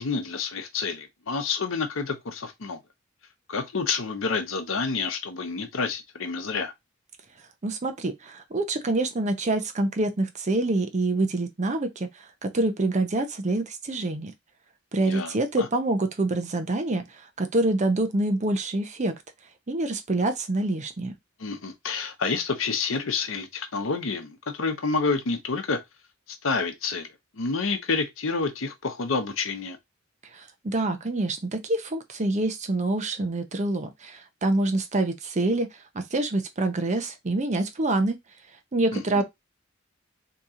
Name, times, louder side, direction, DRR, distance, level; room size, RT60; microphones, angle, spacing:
voice 1, 0.0-2.8 3.5-6.7 15.0-15.7 21.4-25.8 26.4-27.1 27.3-29.8 38.9-39.2, left 4 dB, 75° left, 0.8 m, -29 dB
voice 2, 7.6-12.1 12.4-14.3 14.9-17.0 17.4-19.1 19.7-21.1 30.3-35.7 35.9-38.2 38.7-39.2, right 2 dB, 35° right, 0.6 m, -26 dB
2.9 x 2.8 x 3.6 m
head